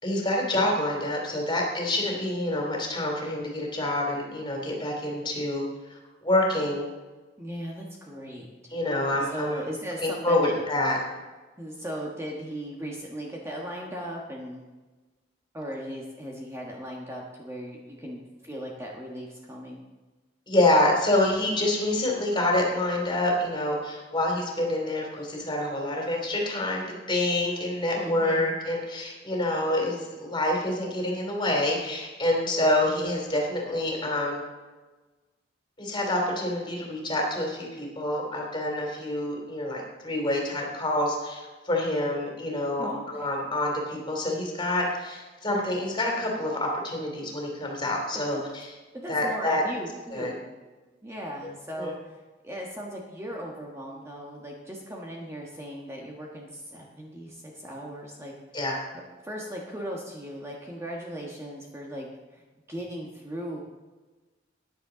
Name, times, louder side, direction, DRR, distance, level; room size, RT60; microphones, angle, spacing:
voice 1, 0.0-6.8 8.7-9.6 10.0-11.0 20.5-34.4 35.8-48.4 49.1-49.6 50.1-50.3 51.8-51.9 58.5-58.8, left 1 dB, 25° left, 0 dB, 2.9 m, -27 dB
voice 2, 7.4-8.5 9.1-10.6 11.6-14.7 15.5-19.8 27.9-28.6 42.8-43.3 48.1-48.4 48.9-50.5 51.0-52.1 52.4-58.3 59.2-62.4 62.7-63.6, equal, 15° right, -2 dB, 1.4 m, -37 dB
15.0 x 10.0 x 3.9 m, 1.2 s
head